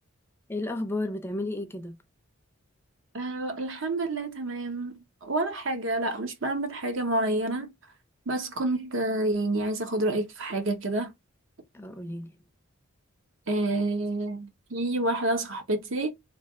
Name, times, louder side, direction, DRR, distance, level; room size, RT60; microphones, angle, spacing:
voice 1, 0.5-2.0 11.7-12.4, left 2 dB, 10° left, 0.4 m, -33 dB
voice 2, 3.1-7.7 8.3-11.1 13.5-16.1, right 2 dB, 65° right, 0.9 m, -28 dB
3.3 x 2.4 x 3.6 m
head